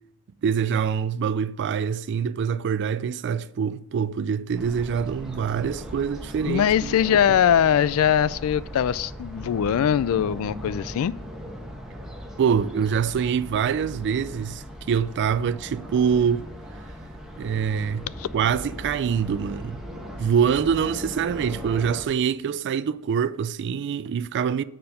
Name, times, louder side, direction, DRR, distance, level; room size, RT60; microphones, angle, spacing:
voice 1, 0.4-6.9 7.3-7.4 12.4-16.5 17.4-18.1 18.3-19.8 20.2-24.6, right 7 dB, 55° right, 0.3 m, -25 dB
sound 1, 4.5-22.0, equal, ahead, 1.1 m, -38 dB
voice 2, 6.5-11.1 18.2-18.3, left 9 dB, 70° left, 0.3 m, -21 dB
7.5 x 4.4 x 6.6 m
head